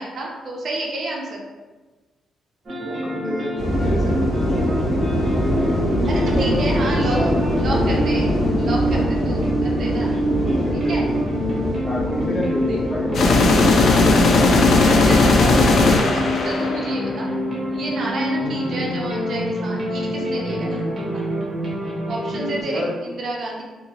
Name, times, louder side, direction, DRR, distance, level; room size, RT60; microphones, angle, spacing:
voice 1, 0.0-1.4 6.1-7.2 7.6-10.2 10.9-11.0 12.6-12.8 14.5-17.3 17.7-20.8 21.1-21.3 22.1-23.6, right 2 dB, 50° right, -2 dB, 0.5 m, -30 dB
sound 1, 2.7-22.6, equal, 35° right, 1.0 m, -26 dB
voice 2, 2.8-4.3 4.6-4.7 5.4-6.6 6.9-7.7 8.9-9.6 10.1-13.5 18.3-18.5 20.6-20.9 22.6-22.9, equal, 20° left, -4 dB, 0.7 m, -30 dB
sound 2, 3.6-14.9, equal, 75° left, 0.8 m, -23 dB
sound 3, 13.1-17.2, left 3 dB, 55° left, 0.4 m, -16 dB
2.7 x 2.7 x 2.8 m, 1.3 s
cardioid pair, 140°, 0 cm